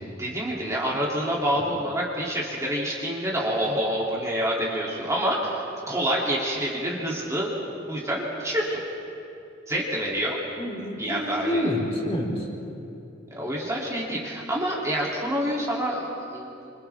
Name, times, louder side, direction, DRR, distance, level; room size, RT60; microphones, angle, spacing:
voice 1, 0.2-8.8 9.7-10.4 11.0-11.7 13.3-16.7, equal, 15° right, -5 dB, 2.8 m, -27 dB
voice 2, 10.6-12.5, left 1 dB, 30° left, -4 dB, 4.1 m, -28 dB
30.0 x 26.0 x 3.5 m, 2.8 s
head